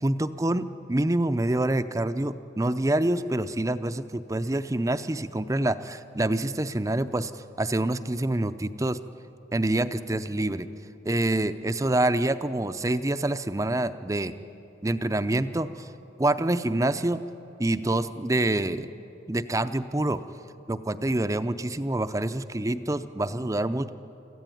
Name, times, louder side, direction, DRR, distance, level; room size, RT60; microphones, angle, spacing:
voice 1, 0.0-9.0 9.5-10.7 11.0-14.4 14.8-15.9 16.2-17.2 17.6-18.9 19.3-20.2 20.7-23.9, right 1 dB, 15° right, 11 dB, 0.5 m, -26 dB
25.5 x 14.5 x 9.2 m, 3.0 s
head